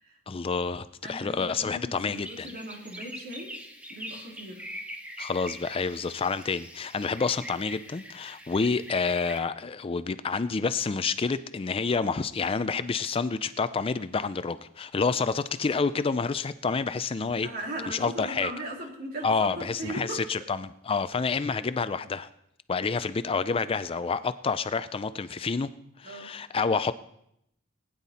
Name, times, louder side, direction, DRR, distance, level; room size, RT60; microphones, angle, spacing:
voice 1, 0.3-2.5 5.2-17.5 17.9-18.5 19.2-22.3 22.7-25.7 26.0-26.9, left 4 dB, 30° left, 13 dB, 0.4 m, -28 dB
voice 2, 1.0-3.5 3.9-4.6 15.2-15.3 17.4-20.2 26.0-26.3, right 1 dB, 50° right, -1 dB, 3.1 m, -38 dB
sound 1, 2.0-9.4, equal, 5° right, 1.3 m, -43 dB
19.5 x 10.0 x 4.2 m, 0.76 s
head